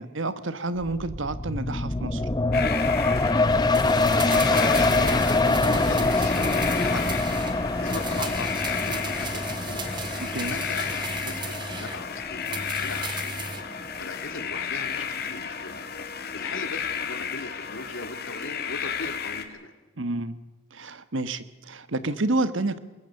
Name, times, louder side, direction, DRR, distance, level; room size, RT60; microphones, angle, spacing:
voice 1, 0.0-2.3 10.2-10.6 20.0-20.4 20.7-22.8, right 2 dB, 70° right, 13 dB, 1.4 m, -29 dB
sound 1, 0.8-14.1 14.5-14.6, left 2 dB, 20° left, 0.7 m, -25 dB
sound 2, 2.5-19.5, left 7 dB, 50° left, 2.0 m, -33 dB
sound 3, 3.7-7.6 7.9-12.0 12.4-13.7 14.0-14.1, right 3 dB, 20° right, 2.0 m, -36 dB
voice 2, 4.1-7.5 7.8-9.8 10.0-13.5 14.0-15.7 16.1-19.7, left 3 dB, 75° left, 7 dB, 2.9 m, -38 dB
23.5 x 21.5 x 6.7 m, 1.2 s
head